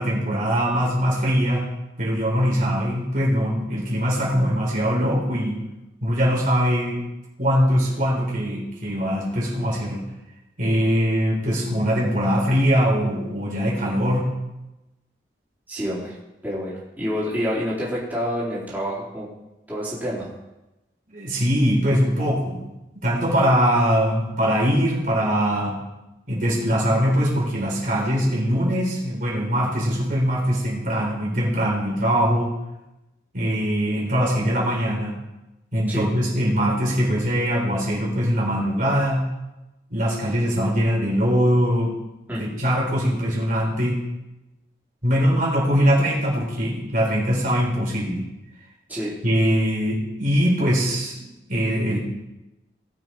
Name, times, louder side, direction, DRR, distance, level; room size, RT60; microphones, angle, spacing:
voice 1, 0.0-1.6 2.0-5.6 6.0-7.0 7.4-10.0 10.6-14.3 21.1-22.7 22.9-25.8 26.3-32.6 33.3-35.1 35.7-39.3 39.9-42.0 42.3-44.0 45.0-48.2 49.2-51.2 51.5-52.0, equal, 50° right, -3 dB, 4.1 m, -22 dB
voice 2, 15.7-16.1 16.4-19.3 19.7-20.3 35.9-36.1 42.3-42.4 48.9-49.1, equal, 10° right, -8 dB, 3.7 m, -28 dB
18.5 x 7.8 x 4.6 m, 0.99 s
head